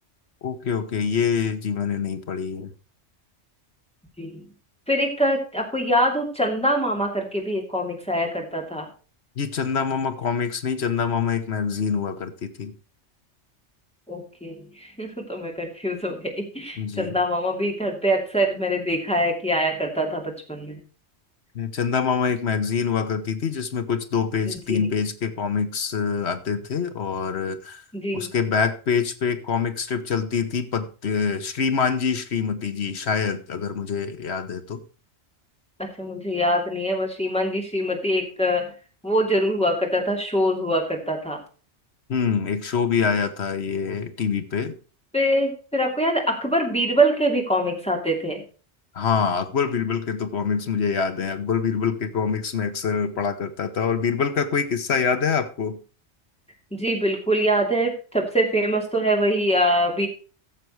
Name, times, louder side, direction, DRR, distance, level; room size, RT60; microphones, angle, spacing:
voice 1, 0.4-2.7 9.4-12.7 16.8-17.2 21.5-27.8 28.1-34.8 42.1-44.8 48.9-55.8, left 6 dB, 65° left, 1.3 m, -25 dB
voice 2, 4.9-8.9 14.1-20.8 24.5-24.9 27.9-28.3 35.8-38.7 39.0-41.4 45.1-48.4 56.7-60.1, equal, 5° left, 2.7 m, -24 dB
15.0 x 6.8 x 4.6 m
omnidirectional pair, 1.2 m